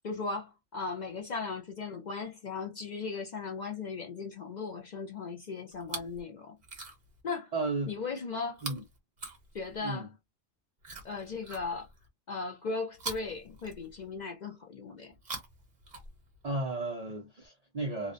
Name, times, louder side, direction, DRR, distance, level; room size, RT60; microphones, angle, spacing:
voice 1, 0.0-6.6 7.2-7.5 7.9-8.6 9.5-10.1 11.0-11.9 12.3-15.1, left 4 dB, 60° left, 0.4 m, -37 dB
Chewing mastication, 5.7-6.2 6.6-7.2 8.5-9.9 10.8-12.1 12.9-14.2 15.1-16.5 17.4-17.5, right 3 dB, 40° right, 0.8 m, -44 dB
voice 2, 7.5-7.9 8.6-8.8 9.8-10.1 16.4-18.1, right 2 dB, 55° right, 0.4 m, -34 dB
2.7 x 2.0 x 2.4 m
omnidirectional pair, 1.3 m